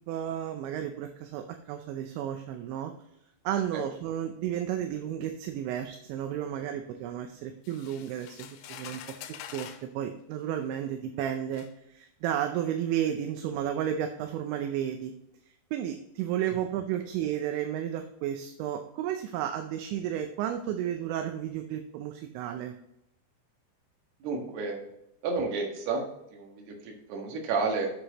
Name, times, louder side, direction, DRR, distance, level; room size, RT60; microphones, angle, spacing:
voice 1, 0.1-2.9 3.4-9.0 9.5-15.1 15.7-22.7, right 10 dB, 80° right, 5 dB, 2.8 m, -32 dB
sound 1, 7.6-9.9 10.8-10.9 11.5-11.7, left 10 dB, 85° left, 3.2 m, -45 dB
voice 2, 24.2-24.8 25.2-26.0 26.3-27.9, right 4 dB, 65° right, 1 dB, 3.2 m, -31 dB
8.3 x 7.7 x 3.0 m, 0.81 s
omnidirectional pair, 5.6 m